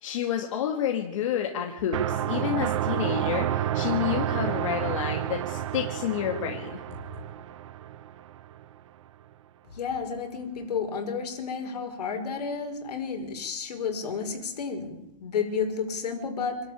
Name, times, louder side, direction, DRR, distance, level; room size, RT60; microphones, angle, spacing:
voice 1, 0.0-6.8, left 9 dB, 50° left, 3 dB, 2.4 m, -29 dB
sound 1, 1.9-8.6, right 11 dB, 50° right, 1.2 m, -30 dB
voice 2, 9.7-16.6, left 5 dB, 75° left, 4 dB, 5.4 m, -31 dB
26.5 x 12.5 x 8.6 m, 0.91 s
hypercardioid pair, 175°, 21 cm